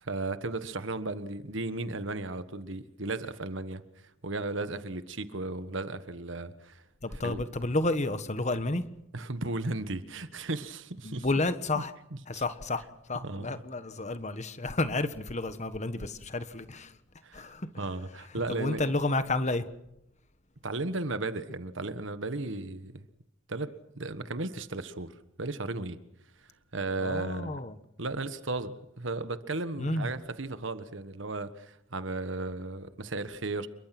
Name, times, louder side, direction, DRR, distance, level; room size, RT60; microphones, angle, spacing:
voice 1, 0.0-3.8 4.2-6.8 7.2-7.4 9.1-11.3 11.7-11.8 12.3-12.4 13.2-13.6 17.2-18.9 20.6-23.1 23.5-26.0 26.7-27.6 28.0-33.7, right 2 dB, 65° right, 1.5 m, -35 dB
voice 2, 7.0-8.8 11.0-11.9 12.3-16.9 17.3-17.7 18.5-19.7 27.0-27.7 29.8-30.1, left 2 dB, 35° left, 1.5 m, -31 dB
28.5 x 23.0 x 6.1 m
head